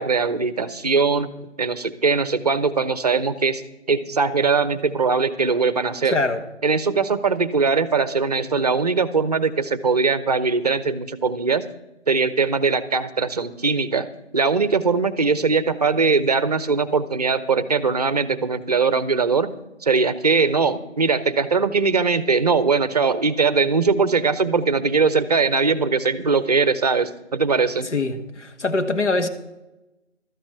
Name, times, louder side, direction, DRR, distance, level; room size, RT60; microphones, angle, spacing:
voice 1, 0.0-1.3 1.6-3.6 3.9-6.2 6.6-11.7 12.1-14.1 14.3-19.5 19.8-27.9, right 4 dB, 35° right, 15 dB, 0.6 m, -21 dB
voice 2, 6.1-6.4 27.9-29.3, left 3 dB, 75° left, 8 dB, 1.6 m, -23 dB
12.5 x 7.2 x 7.8 m, 0.95 s
figure-of-eight pair, 160°, 36 cm